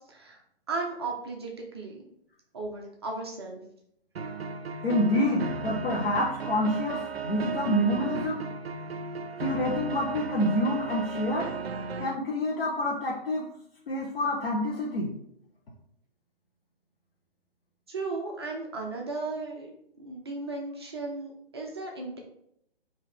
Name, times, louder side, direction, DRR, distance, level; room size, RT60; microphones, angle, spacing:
voice 1, 0.1-0.4 0.7-2.0 2.5-3.6 17.9-19.7 20.0-22.2, right 3 dB, 25° right, 0 dB, 0.5 m, -35 dB
sound 1, 4.2-12.2, right 4 dB, 80° right, 0.5 m, -35 dB
voice 2, 4.8-8.4 9.4-11.5 12.0-13.5 13.9-15.1, left 1 dB, 65° left, -4 dB, 1.0 m, -27 dB
5.2 x 2.8 x 3.4 m, 0.72 s
figure-of-eight pair, 135°, 31 cm